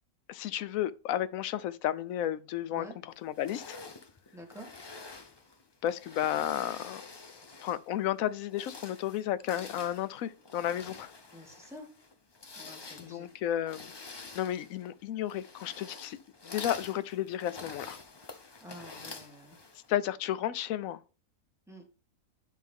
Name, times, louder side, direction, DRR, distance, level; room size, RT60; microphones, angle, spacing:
voice 1, 0.3-3.8 5.8-7.0 7.6-11.1 13.0-13.9 14.3-16.2 16.4-18.0 19.9-21.0, left 11 dB, 75° left, 1.0 m, -33 dB
sound 1, 3.3-7.9 8.4-19.9, left 3 dB, 35° left, 0.4 m, -47 dB
voice 2, 4.3-4.7 11.3-11.9 12.6-13.3 18.6-19.6 21.7-21.8, equal, ahead, 1.8 m, -48 dB
10.5 x 3.6 x 3.6 m
omnidirectional pair, 1.5 m